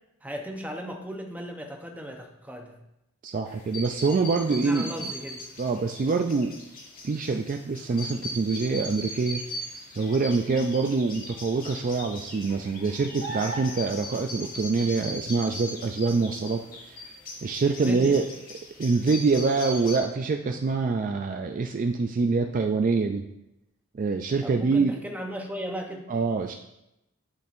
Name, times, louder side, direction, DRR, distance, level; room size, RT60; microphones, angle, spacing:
voice 1, 0.2-2.8 4.5-5.4 17.6-18.2 24.4-26.1, equal, 10° right, 2 dB, 0.7 m, -36 dB
voice 2, 3.2-4.9 5.6-6.6 7.0-9.4 10.0-16.6 16.9-17.0 17.4-18.2 18.8-23.2 23.9-24.9 26.1-26.5, right 4 dB, 40° right, 5 dB, 0.3 m, -25 dB
sound 1, 3.5-20.0, left 1 dB, 45° left, 1.4 m, -40 dB
sound 2, 13.2-14.1 17.7-17.8, right 3 dB, 65° right, 0.8 m, -36 dB
11.5 x 4.4 x 2.5 m, 0.88 s
head